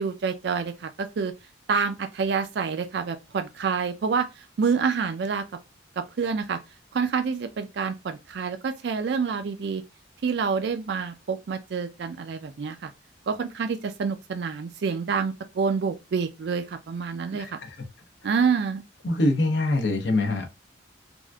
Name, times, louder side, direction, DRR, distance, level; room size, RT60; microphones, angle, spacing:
voice 1, 0.0-1.3 1.7-5.4 6.0-6.6 6.9-9.8 10.2-12.9 13.3-17.6 18.2-18.8, right 5 dB, 60° right, 0.4 m, -27 dB
voice 2, 17.3-17.7 19.0-20.5, left 2 dB, 65° left, 0.7 m, -24 dB
3.5 x 2.5 x 2.2 m
head